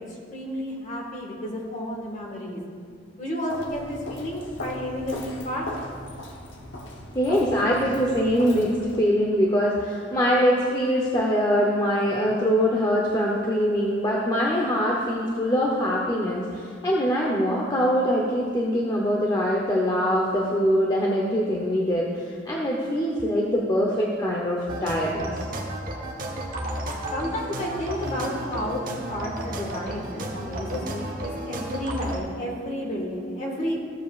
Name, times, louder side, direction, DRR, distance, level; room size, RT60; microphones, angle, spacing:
voice 1, 0.3-2.6 3.2-5.7 27.1-33.8, equal, 40° left, -1 dB, 1.6 m, -31 dB
Walk footsteps, 3.5-9.0, left 1 dB, 90° left, 1.0 m, -38 dB
voice 2, 7.1-25.3, equal, 20° left, -3 dB, 0.8 m, -23 dB
sound 1, 24.7-32.2, right 1 dB, 50° right, 1.1 m, -33 dB
15.0 x 7.2 x 2.4 m, 2.2 s
head